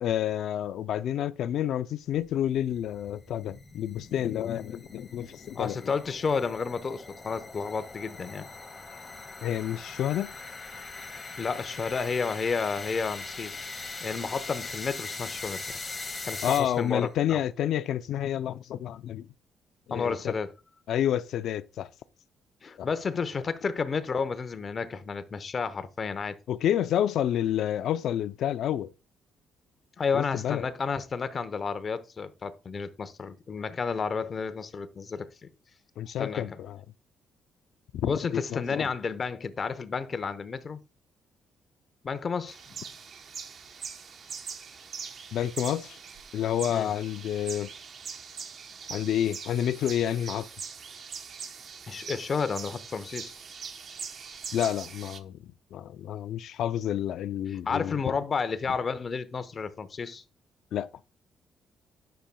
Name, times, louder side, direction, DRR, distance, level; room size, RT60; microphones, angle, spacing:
voice 1, 0.0-5.8 9.4-10.3 16.4-19.3 19.9-20.3 20.9-21.9 22.8-22.9 26.5-28.9 30.1-30.7 36.0-36.8 37.9-38.9 45.3-46.0 46.3-47.7 48.9-50.5 54.5-58.0 60.7-60.9, left 10 dB, 75° left, 0.4 m, -29 dB
sound 1, 2.3-17.1, left 3 dB, 25° left, 1.7 m, -41 dB
voice 2, 5.5-8.5 11.4-13.7 14.0-15.6 16.2-17.4 19.9-20.5 22.6-26.4 30.0-35.3 36.2-36.6 38.0-40.8 42.0-42.8 46.7-46.9 51.9-53.3 57.5-60.2, left 5 dB, 40° left, 0.9 m, -31 dB
sound 2, 42.5-55.2, right 6 dB, 55° right, 1.0 m, -42 dB
10.0 x 6.8 x 2.2 m
cardioid pair, 90°, 0 cm